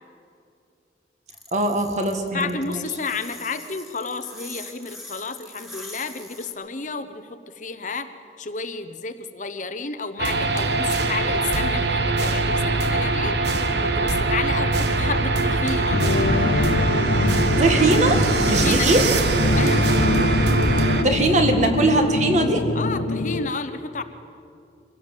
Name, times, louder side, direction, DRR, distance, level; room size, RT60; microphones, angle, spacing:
sound 1, 1.3-6.5, left 2 dB, ahead, 2.5 m, -42 dB
voice 1, 1.5-2.8 17.6-19.0 21.0-22.6, right 2 dB, 40° right, 5 dB, 1.8 m, -21 dB
voice 2, 2.3-8.1 8.4-13.4 13.8-16.0 18.5-19.0 19.5-19.8 22.7-24.0, left 4 dB, 45° left, 10 dB, 0.9 m, -31 dB
sound 2, 10.2-21.0, right 3 dB, 75° right, 1.3 m, -22 dB
sound 3, 15.9-23.5, left 2 dB, 75° left, 0.7 m, -24 dB
23.5 x 17.0 x 7.4 m, 2.5 s
head